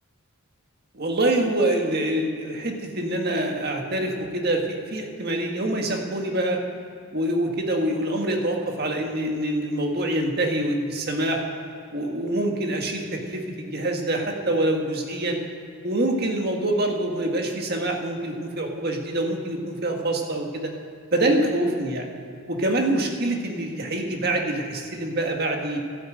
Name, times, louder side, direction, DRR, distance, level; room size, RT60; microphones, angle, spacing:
voice 1, 0.9-6.6 7.1-11.4 11.9-15.4 15.8-20.7 21.1-22.1 22.5-25.8, right 1 dB, 45° right, 2 dB, 1.8 m, -25 dB
12.5 x 10.0 x 7.9 m, 2.6 s
head